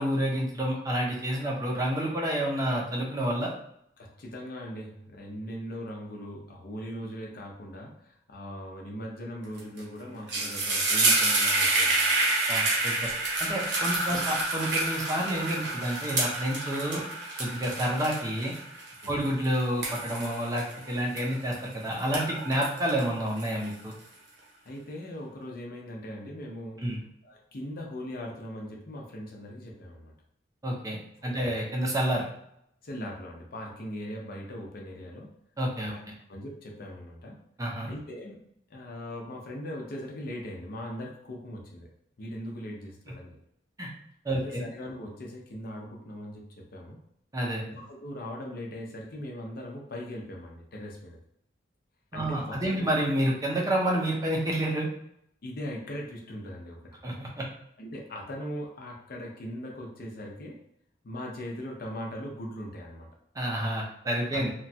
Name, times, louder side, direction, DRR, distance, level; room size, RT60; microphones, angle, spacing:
voice 1, 0.0-3.5 12.5-13.1 13.4-17.0 17.4-18.5 19.1-23.9 26.8-27.0 30.6-32.2 35.6-35.9 37.6-37.9 43.8-43.9 44.2-44.6 47.3-47.6 52.1-54.9 57.0-57.4 63.4-64.5, right 1 dB, 20° right, -2 dB, 0.5 m, -29 dB
voice 2, 4.0-12.3 14.1-14.2 19.0-19.3 24.6-26.9 27.2-30.1 31.2-31.6 32.8-35.4 35.9-36.0 36.3-37.4 37.8-41.9 42.2-43.4 44.3-47.0 47.7-51.2 52.1-52.9 55.4-57.0 57.8-60.6 61.0-63.1 64.3-64.4, equal, 55° left, 0 dB, 0.6 m, -40 dB
sound 1, 9.6-9.8 10.1-21.6 22.0-23.9, right 2 dB, 75° right, 0.9 m, -28 dB
2.9 x 2.3 x 2.6 m, 0.75 s
head